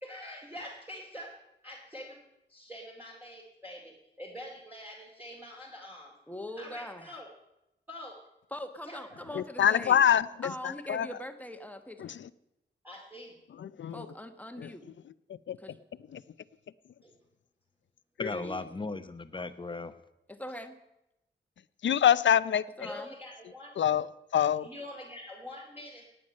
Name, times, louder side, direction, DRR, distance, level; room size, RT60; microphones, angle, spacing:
voice 1, 0.0-1.4 1.6-2.2 2.5-6.1 6.6-7.3 7.9-8.2 8.8-9.2 12.8-13.4 17.0-17.2 22.8-23.7 24.6-26.1, left 1 dB, 10° right, 2.4 m, -45 dB
voice 2, 6.3-7.2 8.5-10.0 10.4-12.2 13.9-14.8 15.6-15.8 18.3-18.7 20.3-20.8 22.8-23.1, left 1 dB, 10° left, 1.2 m, -42 dB
voice 3, 9.3-10.5 10.9-11.1 12.0-12.3 13.6-14.0 14.6-14.7 15.5-15.6 16.1-16.2 18.2-18.3 21.8-22.6 23.8-24.1 24.3-24.7, left 9 dB, 70° left, 0.5 m, -25 dB
voice 4, 18.2-19.9, left 3 dB, 25° left, 0.9 m, -36 dB
17.0 x 9.2 x 6.4 m
wide cardioid pair, 105°, 20 cm